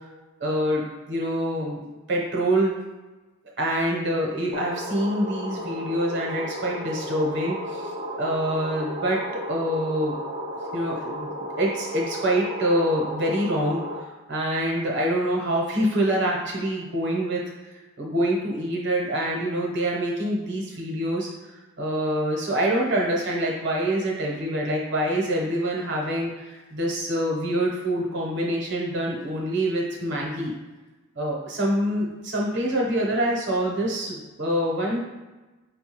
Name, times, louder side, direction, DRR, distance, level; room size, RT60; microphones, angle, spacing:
voice 1, 0.4-2.8 3.6-7.9 8.2-9.2 9.5-10.2 10.7-11.3 11.6-21.3 21.8-30.5 31.2-35.0, right 1 dB, 60° right, -2 dB, 0.9 m, -26 dB
sound 1, 4.5-14.0, equal, 30° right, 0.4 m, -34 dB
5.4 x 2.3 x 3.0 m, 1.2 s
head